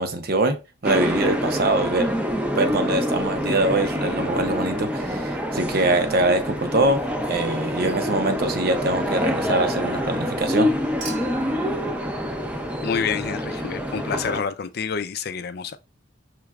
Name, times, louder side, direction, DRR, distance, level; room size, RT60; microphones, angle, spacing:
voice 1, 0.0-2.1 2.6-10.8, right 2 dB, 50° right, 0.7 m, -23 dB
sound 1, 0.8-14.4, equal, 5° right, 0.5 m, -26 dB
Human group actions / Chink clink / Liquid, 11.0-13.4 14.9-15.0, right 6 dB, 80° right, 1.3 m, -41 dB
voice 2, 12.8-15.8, left 6 dB, 55° left, 0.4 m, -28 dB
5.9 x 3.2 x 2.4 m
head